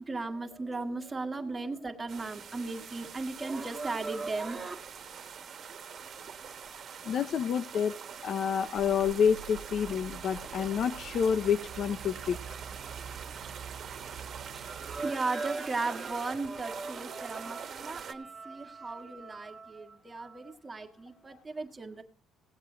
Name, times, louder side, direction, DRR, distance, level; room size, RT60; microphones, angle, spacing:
voice 1, 0.0-4.8 14.5-22.0, right 3 dB, 20° right, 4 dB, 1.8 m, -36 dB
sound 1, 2.1-18.1, right 7 dB, 45° right, 1.5 m, -44 dB
voice 2, 7.1-7.9 8.2-12.4, left 7 dB, 55° left, 10 dB, 0.7 m, -28 dB
sound 2, 8.7-15.1, right 8 dB, 85° right, 0.7 m, -46 dB
17.5 x 8.1 x 3.9 m, 0.39 s
cardioid pair, 115°, 0 cm